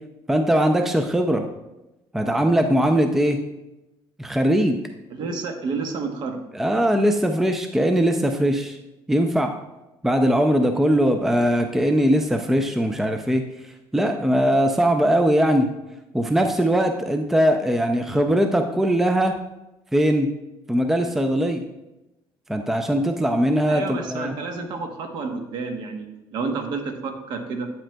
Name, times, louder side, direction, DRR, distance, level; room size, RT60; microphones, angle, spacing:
voice 1, 0.3-1.5 2.1-3.4 4.2-4.8 6.5-8.8 9.1-9.5 10.0-13.4 13.9-15.7 16.1-19.3 19.9-20.3 20.7-21.6 22.5-24.3, equal, 5° right, 6 dB, 0.4 m, -20 dB
voice 2, 5.1-6.4 23.7-26.1 26.3-27.7, right 4 dB, 60° right, 5 dB, 1.0 m, -30 dB
8.5 x 7.6 x 2.2 m, 0.96 s
cardioid pair, 150°, 9 cm